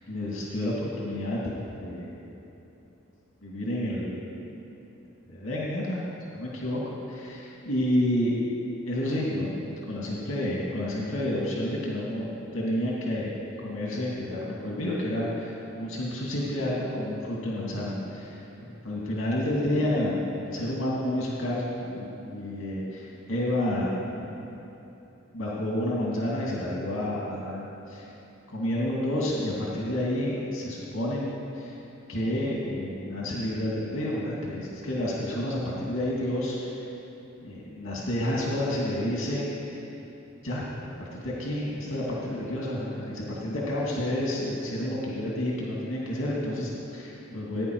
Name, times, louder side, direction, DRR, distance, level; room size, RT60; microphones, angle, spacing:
voice 1, 0.1-1.4 1.8-2.2 3.4-4.5 5.3-6.0 6.3-6.8 7.1-8.4 8.9-13.3 13.6-24.5 25.3-28.1 28.5-31.3 31.6-31.7 32.1-36.8 37.4-39.5 40.4-40.6 41.0-47.6, left 1 dB, 75° left, -5 dB, 2.3 m, -30 dB
16.5 x 9.8 x 4.7 m, 3.0 s
head